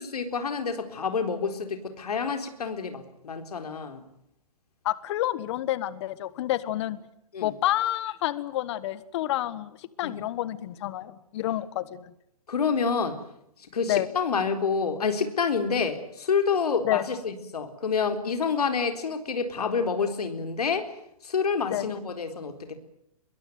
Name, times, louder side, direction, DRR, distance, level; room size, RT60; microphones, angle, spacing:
voice 1, 0.0-4.0 7.3-7.5 10.0-10.2 12.5-13.2 13.7-20.9 21.2-22.7, left 5 dB, 85° left, 7 dB, 4.1 m, -28 dB
voice 2, 4.8-7.0 7.4-12.1 13.9-14.1 16.8-17.0 21.7-21.9, left 14 dB, 45° left, 17 dB, 1.4 m, -29 dB
22.5 x 22.5 x 9.4 m, 0.77 s
hypercardioid pair, 140°, 19 cm